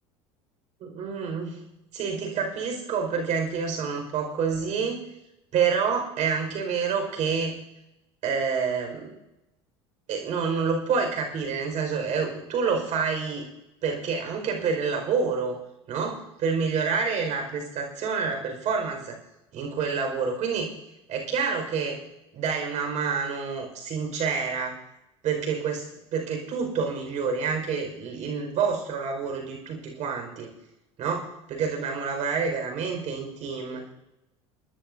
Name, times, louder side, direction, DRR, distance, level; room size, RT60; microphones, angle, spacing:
voice 1, 0.8-1.6 1.9-5.0 5.5-7.6 8.2-9.1 10.1-13.4 13.8-15.6 15.9-19.2 19.5-20.7 21.1-22.0 22.3-24.8 25.2-30.5 31.0-33.9, right 5 dB, 50° right, 3 dB, 4.8 m, -28 dB
29.5 x 10.0 x 2.6 m, 0.90 s
hypercardioid pair, 80°, 15 cm